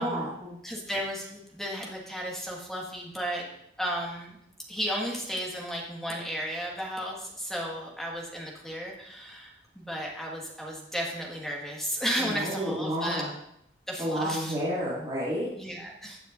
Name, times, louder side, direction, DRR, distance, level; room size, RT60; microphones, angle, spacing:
voice 1, 0.0-0.6 12.1-13.3 14.0-15.5, equal, 30° right, -9 dB, 2.3 m, -30 dB
voice 2, 0.6-3.5 3.8-4.4 4.7-13.3 13.9-14.6 15.6-16.2, equal, ahead, -2 dB, 1.8 m, -34 dB
16.0 x 9.0 x 2.6 m, 0.74 s
head